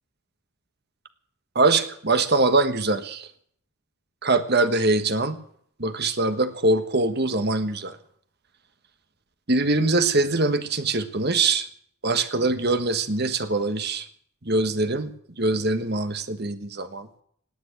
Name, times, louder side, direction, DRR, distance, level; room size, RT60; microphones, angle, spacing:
voice 1, 1.5-3.3 4.2-5.4 5.8-8.0 9.5-11.7 12.0-14.1 14.4-17.1, right 2 dB, 45° right, 9 dB, 1.4 m, -23 dB
18.5 x 9.0 x 8.7 m, 0.63 s
head